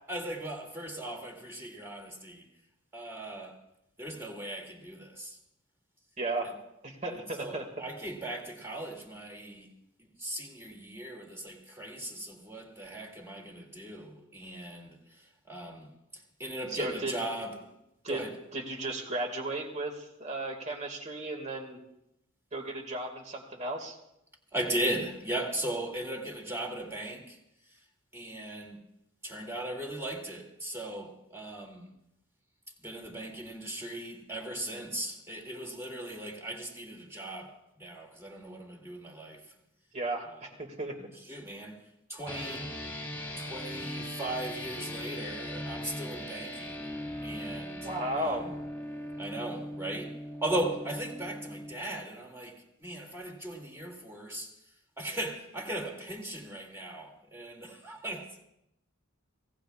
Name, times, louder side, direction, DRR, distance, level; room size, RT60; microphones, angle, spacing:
voice 1, 0.1-2.5 2.9-3.6 4.0-5.4 7.1-9.7 10.2-15.0 15.5-17.7 18.1-18.3 24.5-27.4 28.1-28.8 29.2-31.9 32.8-39.4 41.3-41.8 42.1-42.7 43.4-46.9 47.2-47.9 48.2-48.5 49.2-50.2 50.4-54.5 55.0-58.3, right 1 dB, 15° right, 2.6 m, -38 dB
voice 2, 6.2-6.5 6.8-7.6 16.7-17.1 18.0-18.2 18.5-21.8 22.5-24.0 39.9-40.9 47.8-48.5, right 2 dB, 35° right, 2.2 m, -35 dB
sound 1, 42.3-51.7, left 1 dB, 10° left, 2.2 m, -39 dB
26.0 x 17.5 x 2.5 m
head